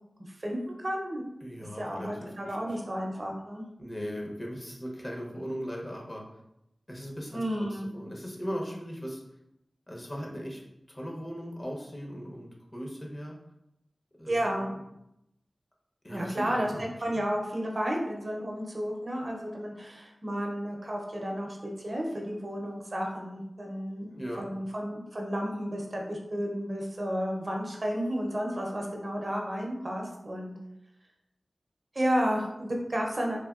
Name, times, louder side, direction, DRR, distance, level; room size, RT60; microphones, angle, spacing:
voice 1, 0.4-1.2 1.8-3.7 7.3-7.9 14.3-14.7 16.1-16.7 17.0-30.5 31.9-33.4, equal, 50° right, 0 dB, 0.5 m, -32 dB
voice 2, 1.4-2.8 3.8-6.2 6.9-9.2 9.9-10.6 10.9-13.3 14.2-14.6 16.0-16.9 24.1-24.5, equal, 30° left, -1 dB, 0.7 m, -38 dB
3.4 x 2.2 x 2.4 m, 0.84 s
cardioid pair, 45°, 0 cm